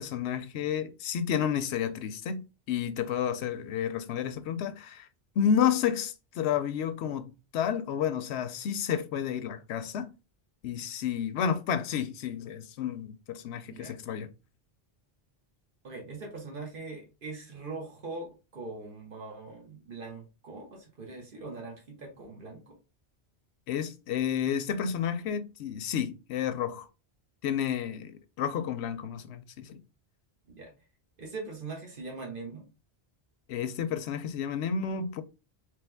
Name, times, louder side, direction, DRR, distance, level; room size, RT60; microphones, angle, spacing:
voice 1, 0.0-2.4 2.7-5.1 5.4-10.1 10.6-14.3 23.7-26.9 27.4-29.8 33.5-35.2, left 8 dB, 80° left, 0.8 m, -31 dB
voice 2, 15.8-22.8 30.5-30.7 31.2-32.7, right 3 dB, 55° right, 1.4 m, -41 dB
3.4 x 3.2 x 3.4 m
omnidirectional pair, 1.1 m